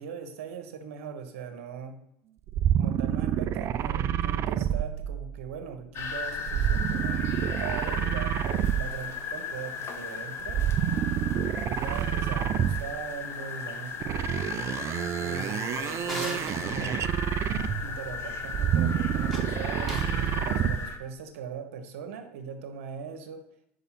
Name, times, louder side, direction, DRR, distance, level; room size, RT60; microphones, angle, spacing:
voice 1, 0.0-2.0 2.7-10.6 11.6-14.3 15.2-17.0 17.8-23.4, right 6 dB, 75° right, 7 dB, 1.2 m, -40 dB
sound 1, 2.5-5.5 6.5-9.2 10.4-13.1 14.0-18.0 18.4-20.9, right 10 dB, 40° right, 0.4 m, -28 dB
sound 2, 5.9-21.0, left 5 dB, 35° left, 1.2 m, -36 dB
Drawer open or close, 15.4-16.6 19.1-20.2, equal, ahead, 2.1 m, -40 dB
5.5 x 5.1 x 5.8 m, 0.77 s
hypercardioid pair, 95°, 7 cm